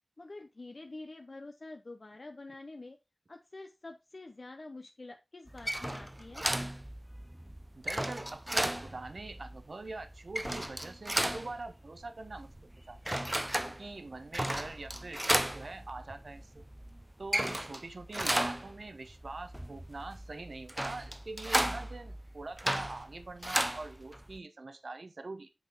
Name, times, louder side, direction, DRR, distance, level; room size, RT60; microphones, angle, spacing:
voice 1, 0.2-3.0 3.3-6.5 18.1-18.3, left 2 dB, 55° left, 5 dB, 0.6 m, -47 dB
sound 1, 5.5-24.4, right 1 dB, 15° right, 0.5 m, -35 dB
voice 2, 7.7-12.5 12.9-13.1 13.6-16.6 17.2-25.5, right 3 dB, 65° right, 9 dB, 0.8 m, -44 dB
8.0 x 4.0 x 4.5 m, 0.27 s
wide cardioid pair, 70°, 0 cm